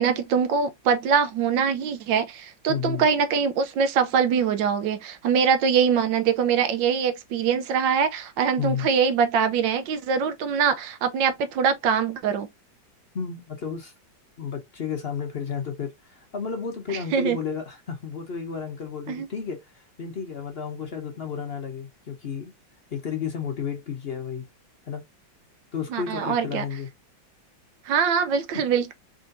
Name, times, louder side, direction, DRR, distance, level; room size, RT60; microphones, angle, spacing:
voice 1, 0.0-12.5 17.1-17.4 19.1-19.3 25.9-26.6 27.9-28.9, right 6 dB, 80° right, 1.5 m, -23 dB
voice 2, 2.7-3.1 8.6-8.9 13.1-13.9 14.4-22.5 22.9-24.5 24.9-25.0 25.7-26.9, left 6 dB, 55° left, 0.7 m, -32 dB
4.8 x 3.8 x 2.6 m
omnidirectional pair, 2.0 m